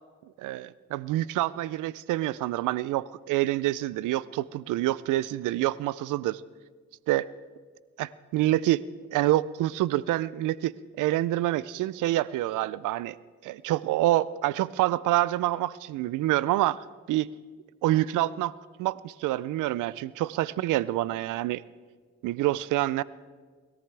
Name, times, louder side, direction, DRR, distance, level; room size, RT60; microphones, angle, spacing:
voice 1, 0.4-6.4 7.1-7.3 8.0-8.8 9.1-10.7 11.0-13.2 13.4-17.3 17.8-18.5 18.8-21.6 22.2-23.0, right 15 dB, 85° right, 20 dB, 0.5 m, -27 dB
21.0 x 13.5 x 3.4 m, 1.5 s
supercardioid pair, 55°, 30 cm